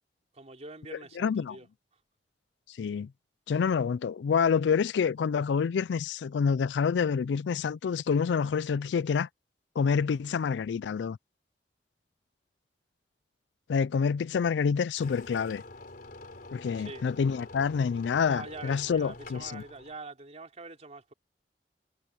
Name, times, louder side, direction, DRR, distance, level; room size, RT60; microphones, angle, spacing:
voice 1, 0.3-1.7 16.7-17.0 18.3-21.1, right 3 dB, 40° right, 3.3 m, -44 dB
voice 2, 0.9-1.6 2.8-3.1 3.5-9.3 9.8-11.2 13.7-15.6 16.5-19.6, left 6 dB, 85° left, 0.4 m, -27 dB
sound 1, 15.0-20.0, left 2 dB, 55° left, 3.9 m, -47 dB
head